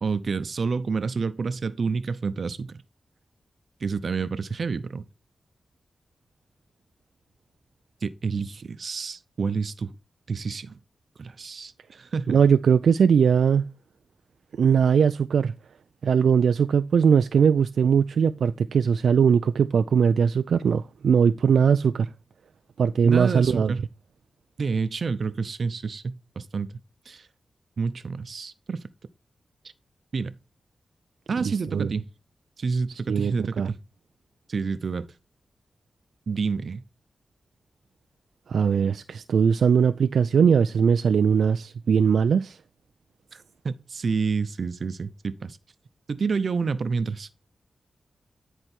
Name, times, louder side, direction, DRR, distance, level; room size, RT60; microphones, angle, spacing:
voice 1, 0.0-2.8 3.8-5.0 8.0-9.9 10.3-10.8 11.2-12.4 23.0-23.8 24.6-26.7 27.1-27.3 27.8-28.8 30.1-30.4 31.3-32.0 32.6-33.8 34.5-35.1 36.3-36.8 43.3-45.6 46.1-47.3, right 5 dB, 65° right, 0.7 m, -29 dB
voice 2, 12.3-13.6 14.6-15.5 16.0-22.1 22.8-23.7 31.5-31.9 33.1-33.7 38.5-42.6, right 6 dB, 90° right, 0.3 m, -20 dB
10.0 x 4.5 x 4.4 m
cardioid pair, 65°, 0 cm